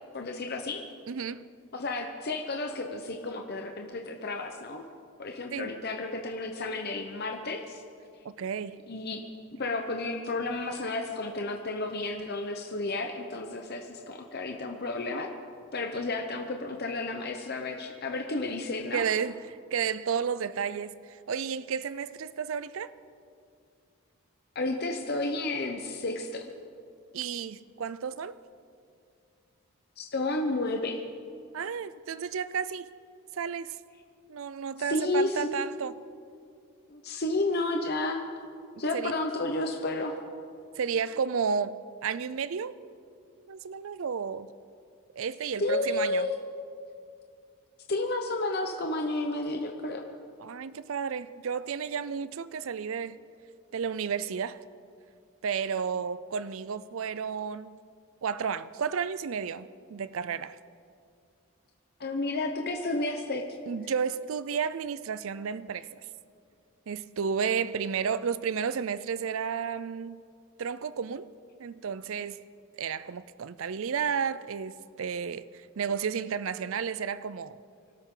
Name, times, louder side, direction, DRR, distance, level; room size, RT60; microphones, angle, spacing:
voice 1, 0.1-0.8 1.7-4.8 5.2-7.8 8.9-9.2 9.6-15.3 15.7-19.0 24.5-26.4 30.0-31.0 34.8-35.5 36.9-38.2 38.8-40.1 45.6-46.3 47.9-50.0 62.0-63.4, left 2 dB, 45° left, 0.9 m, -31 dB
voice 2, 1.1-1.4 5.5-5.7 8.2-8.8 18.9-22.9 27.1-28.4 31.5-32.9 33.3-33.8 34.3-36.0 38.9-39.1 40.8-42.9 43.5-44.5 45.2-46.3 50.4-53.2 53.7-54.6 55.4-57.8 58.2-60.6 63.7-65.9 66.9-70.2 70.6-71.3 71.6-72.4 72.8-77.6, right 6 dB, 65° right, 0.4 m, -32 dB
24.5 x 12.5 x 3.9 m
head